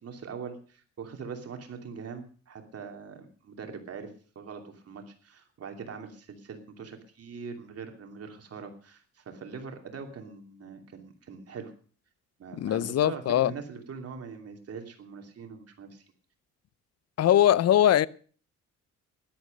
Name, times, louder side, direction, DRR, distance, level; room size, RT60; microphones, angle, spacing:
voice 1, 0.0-11.7 12.4-16.0, right 5 dB, 50° right, 2.8 m, -42 dB
voice 2, 12.6-13.5 17.2-18.1, left 11 dB, 55° left, 0.7 m, -21 dB
13.0 x 11.5 x 6.5 m
cardioid pair, 90°, 30 cm